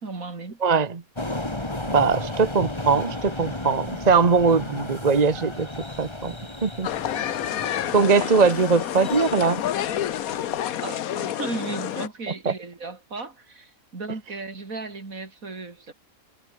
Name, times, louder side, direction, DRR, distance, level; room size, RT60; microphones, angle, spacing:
voice 1, 0.0-0.6 1.8-2.0 10.8-15.9, right 3 dB, 70° right, 3.7 m, -35 dB
voice 2, 0.6-1.0 1.9-5.7 6.0-6.3 6.6-6.9 7.9-9.6 12.4-12.5, right 5 dB, 30° right, 1.2 m, -21 dB
sound 1, 1.1-10.6, left 1 dB, 20° left, 2.7 m, -34 dB
sound 2, 6.8-12.1, left 11 dB, 80° left, 1.3 m, -28 dB
omnidirectional pair, 1.5 m